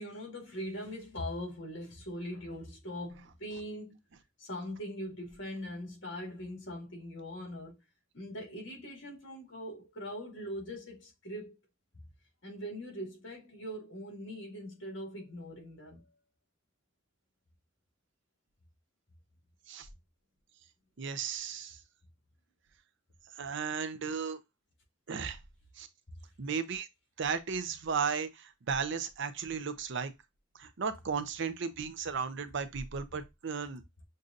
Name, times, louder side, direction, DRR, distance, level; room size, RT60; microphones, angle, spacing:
voice 1, 0.0-4.0 4.4-7.8 8.1-11.6 12.4-16.1, equal, 65° left, 2.1 m, -41 dB
voice 2, 21.0-21.8 23.4-24.4 25.1-25.4 25.8-25.9 26.4-26.9 27.2-30.1 30.6-33.8, right 6 dB, 65° right, 0.6 m, -35 dB
6.5 x 2.7 x 2.5 m
head